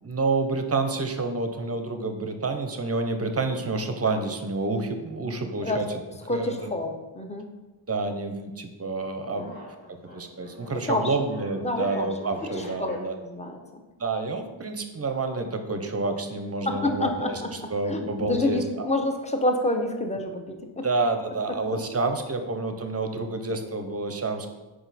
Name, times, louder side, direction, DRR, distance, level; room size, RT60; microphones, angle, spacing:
voice 1, 0.0-6.0 6.3-6.7 7.9-9.5 10.1-13.2 14.0-18.6 20.8-24.5, right 3 dB, 30° right, 6 dB, 0.5 m, -29 dB
voice 2, 6.3-7.5 9.4-9.5 10.9-11.1 11.6-12.1 12.4-13.8 16.7-20.9 21.5-21.6, left 2 dB, 15° left, 5 dB, 0.5 m, -28 dB
sound 1, 8.9-13.0, left 1 dB, 65° left, 2.1 m, -45 dB
6.2 x 4.8 x 4.0 m, 1.1 s
wide cardioid pair, 155°, 47 cm